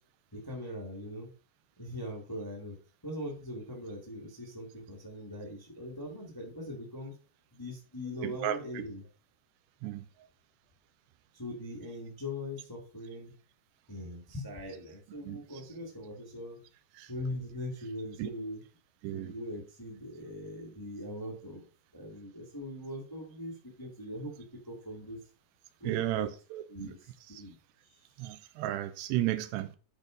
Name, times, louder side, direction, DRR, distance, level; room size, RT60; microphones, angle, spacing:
voice 1, 0.3-1.3 1.8-2.8 3.0-7.1 7.5-9.1 11.3-13.3 13.9-16.6 17.1-18.6 19.1-21.6 21.9-25.2 25.8-26.3 26.7-27.1 27.4-27.5 27.8-27.9, left 1 dB, 10° left, 0.9 m, -41 dB
voice 2, 8.2-8.6 9.8-10.0 15.3-15.4 17.0-17.1 18.2-18.3 19.0-19.3 25.8-26.9 28.2-29.7, right 14 dB, 85° right, 2.8 m, -33 dB
10.5 x 4.4 x 5.2 m
omnidirectional pair, 4.9 m